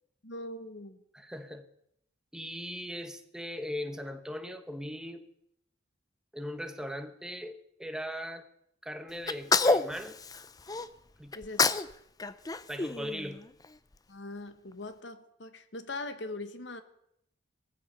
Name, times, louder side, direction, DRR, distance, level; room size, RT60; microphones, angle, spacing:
voice 1, 0.2-1.0 11.3-11.8 14.1-16.8, left 2 dB, 65° left, 1.4 m, -41 dB
voice 2, 1.1-1.6 2.3-5.3 6.3-8.5 8.8-10.2 11.2-11.4 12.7-13.4, equal, 5° right, 1.0 m, -39 dB
Sneeze, 9.3-10.9 11.3-11.9 12.2-13.7, left 4 dB, 20° left, 0.5 m, -28 dB
17.5 x 14.5 x 5.5 m
head